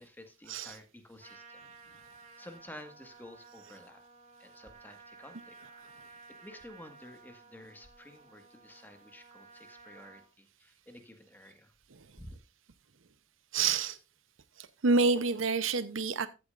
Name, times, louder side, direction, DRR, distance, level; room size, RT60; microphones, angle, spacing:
voice 1, 0.0-1.6 2.1-4.0 4.4-5.5 6.1-11.7 12.2-12.3, left 1 dB, 10° left, 1.6 m, -52 dB
Trumpet, 1.2-10.3, right 3 dB, 35° right, 2.1 m, -55 dB
voice 2, 13.5-14.0 14.6-16.3, right 4 dB, 85° right, 0.8 m, -28 dB
14.0 x 8.6 x 2.5 m
head